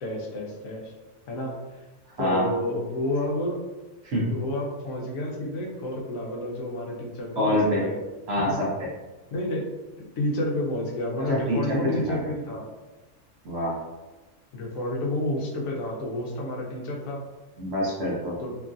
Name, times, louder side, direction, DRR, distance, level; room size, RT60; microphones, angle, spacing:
voice 1, 0.0-0.9 1.3-1.8 2.2-3.6 4.3-8.0 8.4-8.6 9.3-9.7 10.0-12.7 14.5-17.2 18.4-18.6, left 1 dB, 75° left, -1 dB, 1.0 m, -30 dB
voice 2, 2.2-2.5 4.0-4.3 7.4-7.9 8.3-8.9 11.2-12.2 13.4-13.8 17.6-18.4, equal, 60° right, -4 dB, 0.8 m, -26 dB
2.9 x 2.4 x 2.5 m, 1.1 s
omnidirectional pair, 1.5 m